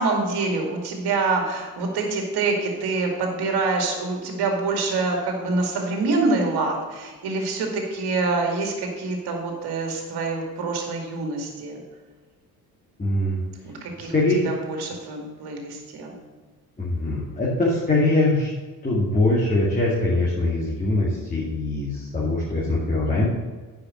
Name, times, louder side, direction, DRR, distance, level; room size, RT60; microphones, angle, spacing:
voice 1, 0.0-11.8 13.6-14.1 14.4-16.1, right 3 dB, 50° right, 2 dB, 2.3 m, -26 dB
voice 2, 13.0-13.4 14.1-14.4 16.8-18.5 18.8-23.2, left 2 dB, 15° left, -6 dB, 2.4 m, -22 dB
9.8 x 5.7 x 6.5 m, 1.4 s
figure-of-eight pair, 50°, 49 cm